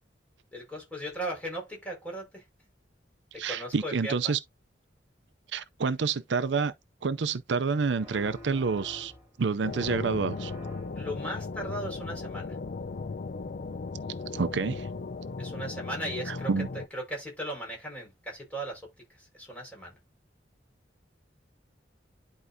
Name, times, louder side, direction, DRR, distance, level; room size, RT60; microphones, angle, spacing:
voice 1, 0.5-2.4 3.3-4.3 10.9-12.6 15.4-20.0, right 1 dB, 10° left, 5.0 m, -37 dB
voice 2, 3.4-4.4 5.5-6.7 7.0-9.1 9.4-10.5 14.3-14.9 16.3-16.7, right 5 dB, 70° right, 0.5 m, -28 dB
sound 1, 8.0-9.4 9.7-11.2, left 1 dB, 15° right, 6.3 m, -47 dB
sound 2, 9.6-16.9, left 3 dB, 50° left, 0.5 m, -37 dB
11.0 x 4.7 x 2.7 m
head